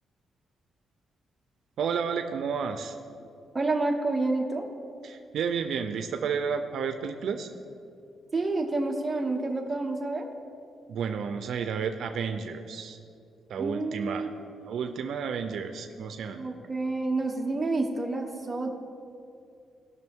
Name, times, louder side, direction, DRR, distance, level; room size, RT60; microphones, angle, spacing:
voice 1, 1.8-3.0 5.0-7.5 10.9-13.0 13.5-14.3 14.6-16.4, right 6 dB, 75° right, 7 dB, 0.5 m, -31 dB
voice 2, 3.5-4.7 8.3-10.3 13.6-14.3 16.4-18.7, right 2 dB, 20° right, 2 dB, 1.1 m, -29 dB
17.5 x 6.1 x 3.6 m, 2.5 s
cardioid pair, 110°, 0 cm